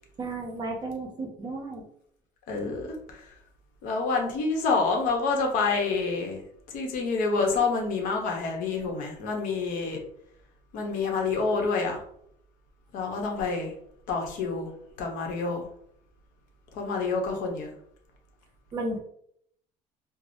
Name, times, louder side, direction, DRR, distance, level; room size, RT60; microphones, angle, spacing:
voice 1, 0.2-1.8 18.7-19.0, right 2 dB, 30° right, 1 dB, 0.7 m, -33 dB
voice 2, 2.5-3.3 3.8-6.4 6.7-10.0 10.7-12.0 12.9-13.7 14.1-14.7 15.0-15.6 16.7-17.7, left 4 dB, 60° left, 2 dB, 0.9 m, -28 dB
4.6 x 2.0 x 2.6 m, 0.69 s
cardioid pair, 170°, 15 cm